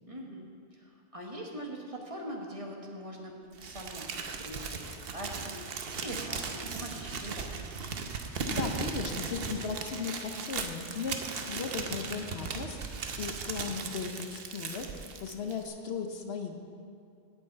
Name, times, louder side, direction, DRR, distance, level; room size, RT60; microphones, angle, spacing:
voice 1, 0.1-7.6, equal, 30° right, -1 dB, 1.2 m, -42 dB
Crumpling crinkling, 3.6-15.7, right 5 dB, 60° right, 0.9 m, -37 dB
voice 2, 8.1-16.6, left 5 dB, 65° left, 4 dB, 1.0 m, -37 dB
8.4 x 6.6 x 8.1 m, 2.5 s
omnidirectional pair, 1.2 m